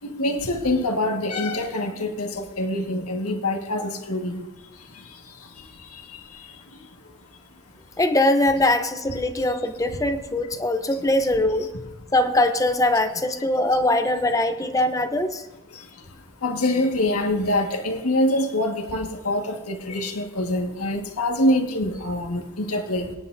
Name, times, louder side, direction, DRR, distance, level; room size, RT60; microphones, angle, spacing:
voice 1, 0.0-4.4 16.4-23.1, left 1 dB, 80° left, 3 dB, 1.6 m, -25 dB
voice 2, 8.0-11.7 12.1-15.4, left 1 dB, 15° left, 8 dB, 0.7 m, -22 dB
23.0 x 10.0 x 2.6 m, 1.0 s
head